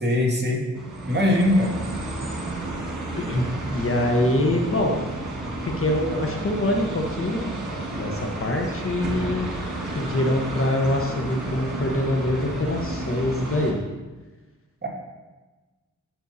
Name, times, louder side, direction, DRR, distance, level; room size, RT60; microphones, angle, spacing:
voice 1, 0.0-0.6 1.1-1.7 14.8-14.9, left 1 dB, 35° right, -2 dB, 2.1 m, -21 dB
sound 1, 0.7-13.7, right 2 dB, 70° right, 1.8 m, -32 dB
voice 2, 3.2-5.0 5.6-7.5 8.0-9.5 9.9-13.8, left 1 dB, 45° left, 2 dB, 1.2 m, -24 dB
13.5 x 5.5 x 2.8 m, 1.2 s
cardioid pair, 65°, 31 cm